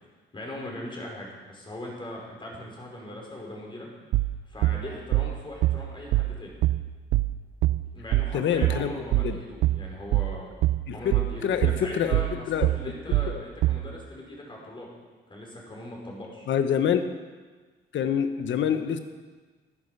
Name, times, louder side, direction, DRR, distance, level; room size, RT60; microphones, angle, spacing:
voice 1, 0.3-3.9 4.5-6.6 7.9-10.5 10.9-14.9 15.3-16.5, left 1 dB, 25° left, -2 dB, 5.1 m, -40 dB
sound 1, 4.1-13.9, right 16 dB, 80° right, 0.5 m, -24 dB
voice 2, 8.3-8.9 9.2-9.4 10.9-11.1 11.4-12.2 12.5-12.7 13.3-13.4 16.5-17.1 17.9-19.0, left 8 dB, 70° left, 9 dB, 1.1 m, -26 dB
13.5 x 9.9 x 6.7 m, 1.4 s
cardioid pair, 90°, 20 cm